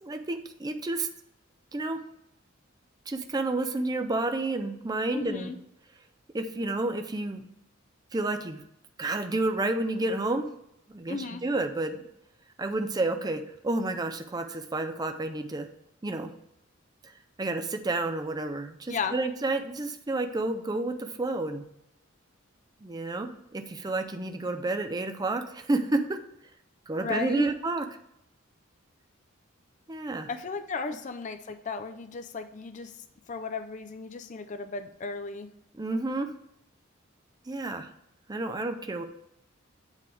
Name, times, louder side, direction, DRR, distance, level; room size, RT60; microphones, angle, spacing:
voice 1, 0.0-1.1 1.7-2.0 3.1-5.5 6.3-7.5 8.1-8.6 9.0-10.5 10.9-12.0 12.6-15.7 16.0-16.3 17.4-21.6 22.8-26.2 26.9-27.9 29.9-30.3 35.7-36.3 37.5-37.9 38.3-39.0, right 2 dB, 20° right, 6 dB, 0.5 m, -30 dB
voice 2, 5.1-5.6 11.1-11.4 18.9-19.1 27.0-27.5 30.3-32.9 33.3-35.5, left 4 dB, 40° left, 9 dB, 0.4 m, -35 dB
8.4 x 3.4 x 4.8 m, 0.79 s
head